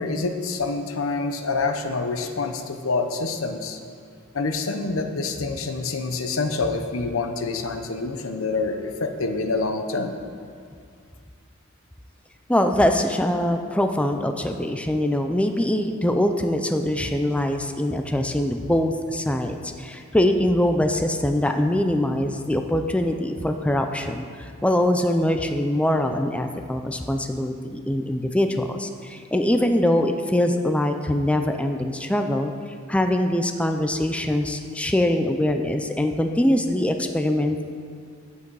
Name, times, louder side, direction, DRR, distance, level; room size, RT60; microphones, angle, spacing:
voice 1, 0.0-3.8 4.3-10.2, left 3 dB, 75° left, 6 dB, 0.8 m, -27 dB
voice 2, 12.5-32.5 32.9-37.6, left 1 dB, 5° left, 5 dB, 0.4 m, -23 dB
10.5 x 8.3 x 4.7 m, 2.2 s
head